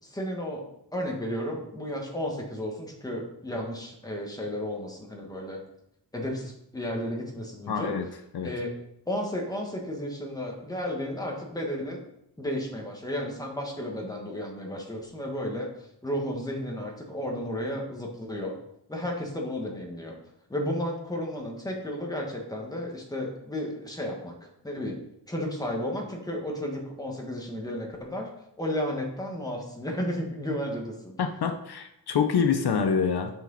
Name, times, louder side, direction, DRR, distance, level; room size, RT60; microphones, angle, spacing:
voice 1, 0.0-5.6 6.1-7.9 8.4-8.7 9.1-12.0 12.4-18.6 18.9-20.2 20.5-25.0 25.3-28.3 28.6-31.1, left 1 dB, 10° left, 0 dB, 1.6 m, -33 dB
voice 2, 7.7-8.1 8.3-8.5 31.2-33.3, left 6 dB, 70° left, 6 dB, 0.8 m, -26 dB
8.7 x 6.0 x 4.1 m, 0.78 s
wide cardioid pair, 145°, 40 cm